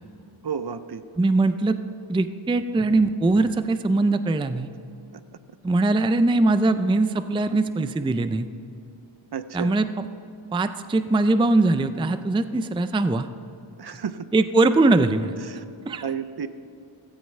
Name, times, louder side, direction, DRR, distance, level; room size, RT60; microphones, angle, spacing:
voice 1, 0.4-1.0 7.5-7.6 9.3-9.7 13.8-14.3 15.5-15.6 16.0-16.5, right 7 dB, 50° right, 12 dB, 0.6 m, -31 dB
voice 2, 1.2-1.8 2.1-4.7 5.6-8.5 9.5-10.1 10.5-13.3 14.3-15.4 15.9-16.0, right 2 dB, 10° right, 11 dB, 0.4 m, -21 dB
16.0 x 14.0 x 3.3 m, 2.7 s
wide cardioid pair, 80°, 49 cm